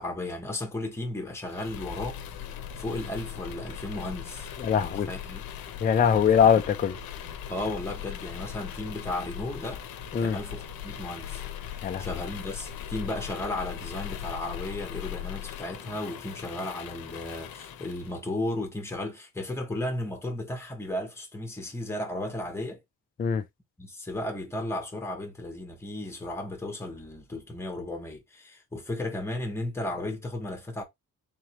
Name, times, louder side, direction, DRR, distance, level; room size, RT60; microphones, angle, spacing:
voice 1, 0.0-2.2 2.8-4.5 4.8-5.5 7.5-9.8 10.2-11.4 12.0-22.8 23.8-30.8, left 1 dB, 5° left, 1.0 m, -34 dB
sound 1, 1.5-18.2, left 9 dB, 85° left, 0.8 m, -39 dB
voice 2, 4.6-5.1 5.8-7.0 10.1-10.4 11.8-12.1 23.2-23.4, left 7 dB, 25° left, 0.4 m, -22 dB
3.8 x 3.1 x 3.0 m
cardioid pair, 155°, 34 cm